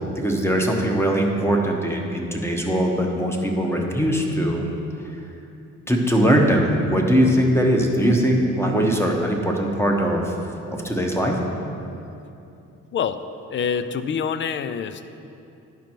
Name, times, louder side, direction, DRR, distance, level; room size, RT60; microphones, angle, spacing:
voice 1, 0.1-4.6 5.9-10.3 10.7-11.4, equal, 10° left, 1 dB, 1.1 m, -21 dB
voice 2, 12.9-13.2 13.5-15.1, left 7 dB, 40° left, 12 dB, 0.4 m, -26 dB
10.0 x 5.2 x 4.5 m, 2.7 s
cardioid pair, 90°, 30 cm